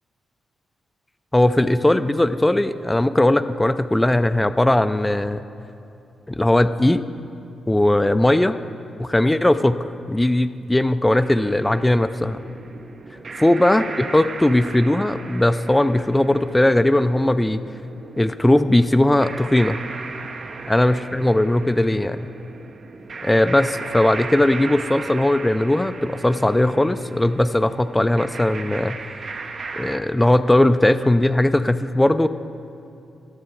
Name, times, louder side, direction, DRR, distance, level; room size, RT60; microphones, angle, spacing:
voice 1, 1.3-5.4 6.3-7.0 7.7-8.6 9.0-12.4 13.4-17.6 18.2-19.8 20.7-22.3 23.2-29.0 29.8-32.3, left 1 dB, 10° left, 11 dB, 0.3 m, -18 dB
sound 1, 11.2-30.0, right 4 dB, 55° right, 0.6 m, -37 dB
17.5 x 6.5 x 3.8 m, 2.7 s
cardioid pair, 75°, 0 cm